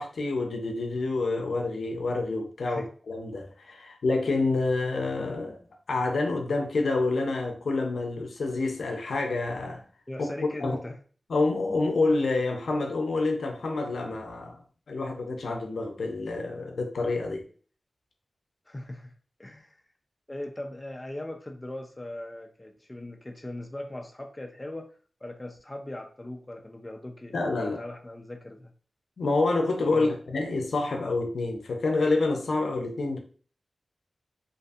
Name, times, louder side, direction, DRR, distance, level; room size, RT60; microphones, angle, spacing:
voice 1, 0.0-5.6 5.9-9.8 10.2-10.3 10.6-10.8 11.3-14.6 14.9-17.5 27.3-27.8 29.2-33.2, left 3 dB, 85° left, 0.5 m, -28 dB
voice 2, 10.1-11.0 18.7-19.1 19.4-19.8 20.3-24.9 25.2-28.7 29.9-30.2, left 1 dB, 20° left, 0.4 m, -39 dB
2.6 x 2.5 x 2.4 m
wide cardioid pair, 85°, 0 cm